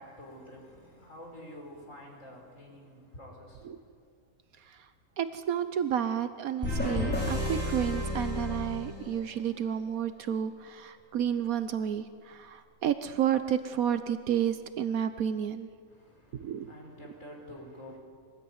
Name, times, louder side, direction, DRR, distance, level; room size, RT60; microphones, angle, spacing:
voice 1, 0.0-3.8 15.9-18.0, equal, 65° left, 0 dB, 5.3 m, -48 dB
voice 2, 5.2-15.7 16.4-16.7, right 9 dB, 80° right, 10 dB, 1.3 m, -31 dB
sound 1, 6.6-9.4, left 1 dB, 5° left, 5.6 m, -32 dB
25.5 x 19.5 x 9.7 m, 2.1 s
omnidirectional pair, 1.5 m